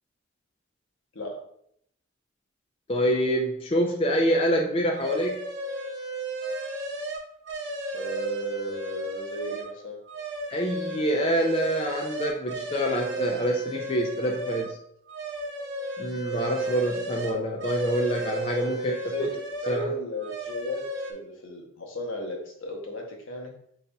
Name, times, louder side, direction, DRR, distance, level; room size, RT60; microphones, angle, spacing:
voice 1, 2.9-5.4 10.5-14.8 16.0-18.9 19.2-19.3 19.6-19.9, equal, 30° left, 1 dB, 0.3 m, -26 dB
sound 1, 4.9-9.7 10.1-14.7 15.1-19.9 20.2-21.1, right 2 dB, 55° right, 0.6 m, -34 dB
voice 2, 7.9-10.0 18.6-19.3 19.6-23.6, equal, 75° left, 1 dB, 0.9 m, -35 dB
3.9 x 3.9 x 2.3 m, 0.70 s
head